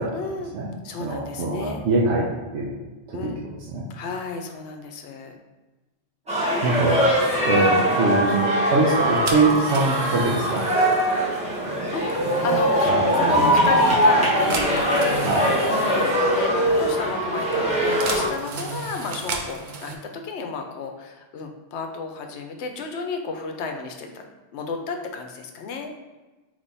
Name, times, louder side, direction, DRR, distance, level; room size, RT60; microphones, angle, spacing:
voice 1, 0.1-0.6 0.8-1.8 3.1-3.4 3.9-5.3 11.9-12.9 13.2-14.9 15.6-24.2 24.5-25.9, left 4 dB, 75° left, 4 dB, 0.9 m, -32 dB
voice 2, 1.0-2.2 2.5-2.8 3.1-3.3 3.7-3.8 6.6-7.1 7.4-10.6 12.9-13.0 13.3-13.5 15.2-15.5, right 3 dB, 80° right, -4 dB, 1.0 m, -23 dB
sound 1, 6.3-18.3, equal, 5° right, 1.1 m, -21 dB
sound 2, 8.8-19.9, right 4 dB, 55° right, 0.6 m, -36 dB
3.4 x 3.2 x 4.0 m, 1.2 s
omnidirectional pair, 1.2 m